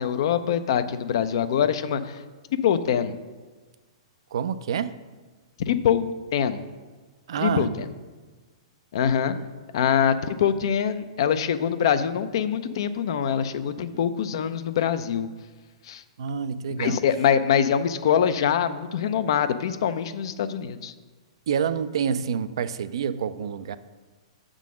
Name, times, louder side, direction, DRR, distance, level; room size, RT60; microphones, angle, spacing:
voice 1, 0.0-2.2 2.6-3.1 5.6-6.6 7.4-7.9 8.9-9.4 9.7-15.3 15.9-16.0 16.8-20.9, left 8 dB, 60° left, 12 dB, 0.5 m, -24 dB
voice 2, 4.3-4.9 7.3-7.7 9.4-9.5 13.9-14.0 16.2-17.0 21.5-23.8, right 7 dB, 65° right, 14 dB, 0.4 m, -27 dB
7.4 x 3.8 x 6.2 m, 1.3 s
figure-of-eight pair, 110°, 3 cm